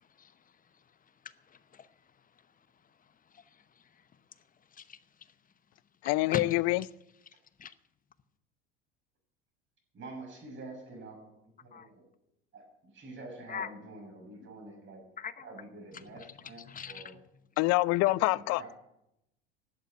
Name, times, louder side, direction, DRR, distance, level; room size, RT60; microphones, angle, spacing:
voice 1, 0.0-0.8 1.2-1.9 2.4-2.7 3.0-4.4 4.7-5.3 6.3-6.5 7.3-7.4 7.6-7.7 11.7-11.9 13.5-13.7 15.2-15.5 15.9-17.2 18.1-18.2, left 7 dB, 25° left, 0.9 m, -43 dB
voice 2, 6.0-6.8 17.6-18.8, left 20 dB, 55° left, 0.5 m, -26 dB
voice 3, 9.9-12.0 12.5-12.7 12.9-15.0 15.4-17.2 18.1-18.7, right 2 dB, 40° right, 6.6 m, -47 dB
12.0 x 8.0 x 9.2 m
hypercardioid pair, 85°, 30 cm